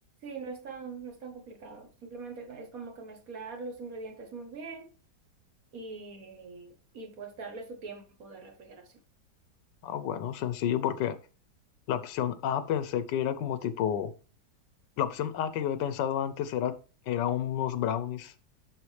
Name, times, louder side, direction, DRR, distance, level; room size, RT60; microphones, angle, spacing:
voice 1, 0.2-4.9 5.7-8.9, right 4 dB, 55° right, 1.6 m, -42 dB
voice 2, 9.8-11.2 11.9-14.1 15.0-16.8 17.1-18.3, left 10 dB, 85° left, 1.4 m, -30 dB
10.5 x 4.3 x 3.2 m
omnidirectional pair, 1.9 m